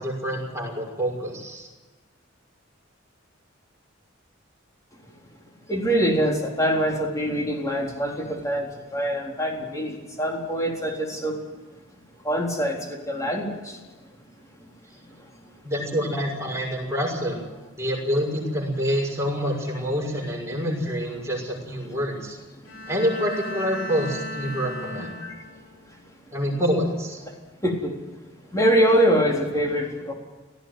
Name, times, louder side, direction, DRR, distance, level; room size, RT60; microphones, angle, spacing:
voice 1, 0.0-1.7 15.6-17.4 17.8-22.4 22.9-25.1 26.3-27.2, equal, 15° right, -1 dB, 6.1 m, -27 dB
voice 2, 5.7-11.4 12.2-13.8 14.6-14.7 15.0-15.3 21.8-21.9 25.2-25.4 25.9-26.0 27.3-27.4 27.6-28.0 28.5-30.1, equal, 15° left, 0 dB, 3.8 m, -24 dB
Bowed string instrument, 22.6-25.8, left 1 dB, 75° left, 4.2 m, -36 dB
18.0 x 15.5 x 9.5 m, 1.3 s
head